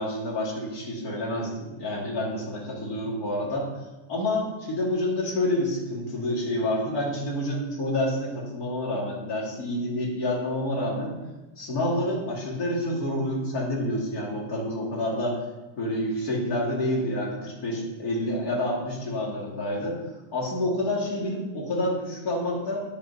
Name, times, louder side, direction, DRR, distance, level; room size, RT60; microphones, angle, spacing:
voice 1, 0.0-3.7 4.1-11.2 11.6-15.4 15.8-20.0 20.3-22.8, left 1 dB, 30° left, -4 dB, 2.7 m, -28 dB
9.7 x 7.9 x 5.5 m, 1.1 s
omnidirectional pair, 3.6 m